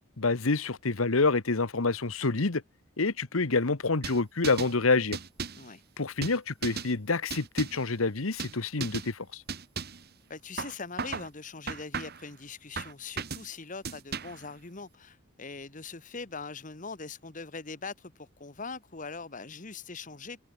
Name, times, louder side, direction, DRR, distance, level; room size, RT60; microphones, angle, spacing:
voice 1, 0.2-2.6 3.0-5.2 6.0-9.4, left 3 dB, 85° left, 1.3 m, -27 dB
sound 1, 4.0-4.7 5.1-5.7 6.2-6.9 7.3-7.9 8.4-8.6 8.8-9.1 9.5-10.0 10.6-11.3 11.7-12.3 12.8-13.5 13.8-14.5, right 5 dB, 50° right, 2.0 m, -36 dB
voice 2, 10.3-20.4, left 4 dB, 40° left, 1.3 m, -42 dB
head